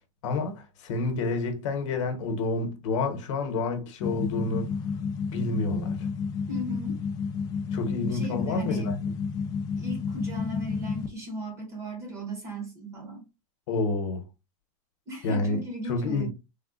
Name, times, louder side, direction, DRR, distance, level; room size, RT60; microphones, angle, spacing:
voice 1, 0.2-4.7 5.3-6.1 7.7-9.0 13.7-14.2 15.2-16.3, left 3 dB, 65° left, 0.9 m, -29 dB
sound 1, 4.0-11.1, left 5 dB, 20° left, 0.4 m, -31 dB
voice 2, 6.5-7.0 8.1-8.9 9.8-13.3 15.1-16.3, right 1 dB, 15° right, 0.8 m, -36 dB
3.5 x 2.1 x 2.4 m
supercardioid pair, 170°, 17 cm